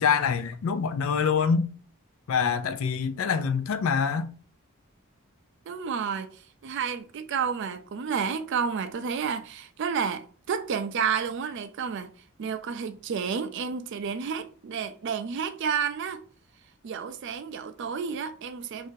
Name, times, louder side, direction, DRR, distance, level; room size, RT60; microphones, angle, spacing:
voice 1, 0.0-1.7 2.3-4.3, left 6 dB, 65° left, 0.4 m, -25 dB
voice 2, 5.7-12.1 12.4-16.2 16.8-18.9, right 6 dB, 55° right, 0.4 m, -31 dB
2.6 x 2.5 x 3.7 m
head